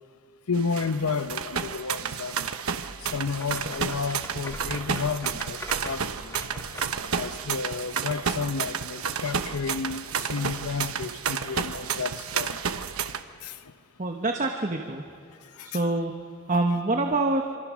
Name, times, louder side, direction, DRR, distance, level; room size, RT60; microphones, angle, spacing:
voice 1, 0.5-2.5 3.0-6.3 7.1-12.6 13.4-13.6 15.6-15.7, left 5 dB, 90° left, 11 dB, 0.9 m, -31 dB
sound 1, 0.5-13.2, right 6 dB, 80° right, 1.0 m, -31 dB
sound 2, 3.0-7.1, left 1 dB, 15° left, 1.6 m, -42 dB
voice 2, 14.0-15.0 15.6-16.1 16.5-17.4, right 2 dB, 35° right, 3 dB, 1.1 m, -25 dB
26.5 x 25.0 x 6.3 m, 2.4 s
head